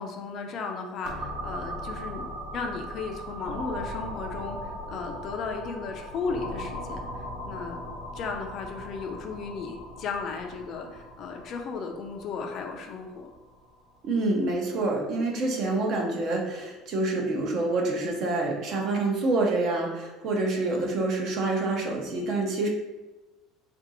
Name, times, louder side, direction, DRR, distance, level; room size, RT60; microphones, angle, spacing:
voice 1, 0.0-7.8 8.1-13.3, left 4 dB, 40° left, 3 dB, 0.5 m, -35 dB
sound 1, 1.0-14.6, equal, 75° right, 1.4 m, -39 dB
voice 2, 14.0-22.7, right 2 dB, 45° right, 0 dB, 0.8 m, -27 dB
3.6 x 2.6 x 4.1 m, 1.1 s
cardioid pair, 165°, 0 cm